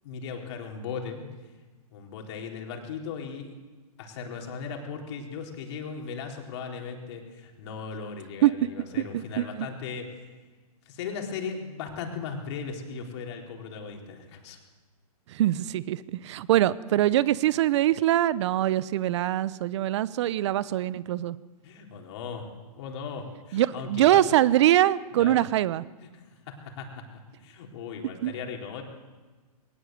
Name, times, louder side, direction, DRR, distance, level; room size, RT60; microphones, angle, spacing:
voice 1, 0.0-1.3 1.9-3.5 4.0-10.3 10.9-14.6 21.6-22.5 22.8-24.2 25.2-25.4 26.1-27.0 27.4-28.8, left 5 dB, 45° left, 1 dB, 4.1 m, -37 dB
voice 2, 9.4-9.7 15.3-21.4 23.5-25.8 28.2-28.3, right 13 dB, 45° right, 18 dB, 0.8 m, -23 dB
21.5 x 19.0 x 7.8 m, 1.3 s
hypercardioid pair, 135°, 20 cm